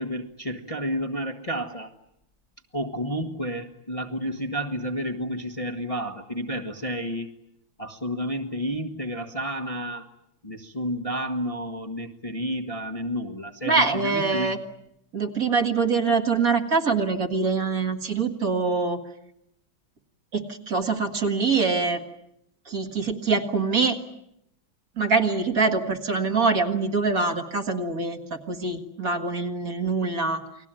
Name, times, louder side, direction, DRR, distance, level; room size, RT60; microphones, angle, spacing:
voice 1, 0.0-1.9 2.7-7.3 7.8-10.1 10.4-14.6, equal, 20° left, 4 dB, 1.3 m, -31 dB
voice 2, 13.6-14.6 15.1-19.0 20.3-22.0 22.7-24.0 25.0-30.4, right 4 dB, 45° right, 5 dB, 2.2 m, -24 dB
29.5 x 21.0 x 9.0 m, 0.79 s
omnidirectional pair, 2.1 m